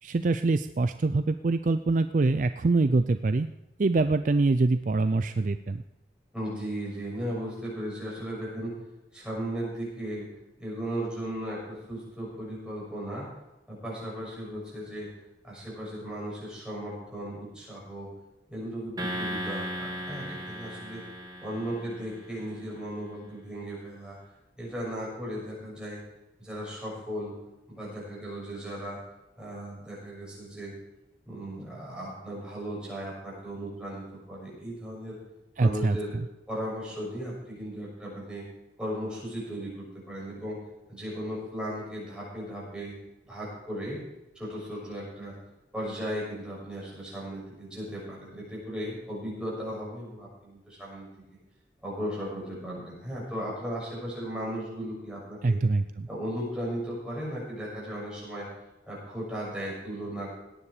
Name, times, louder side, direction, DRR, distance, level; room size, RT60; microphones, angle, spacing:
voice 1, 0.0-3.5 3.8-5.8 35.6-36.2 55.4-56.1, right 3 dB, 45° right, 10 dB, 0.4 m, -25 dB
voice 2, 6.3-8.7 9.1-10.3 10.6-13.3 13.7-15.1 15.4-18.1 18.5-21.0 21.4-24.2 24.6-26.0 26.4-27.4 27.7-29.0 29.4-30.7 31.2-35.2 35.6-36.1 36.5-38.5 38.8-40.6 40.9-42.9 43.2-44.0 44.3-45.4 45.7-51.4 51.8-55.6 56.1-58.5 58.9-60.3, equal, 5° right, -6 dB, 6.6 m, -36 dB
sound 1, 19.0-22.4, equal, 20° right, 2.0 m, -36 dB
17.5 x 10.0 x 4.9 m, 0.97 s
head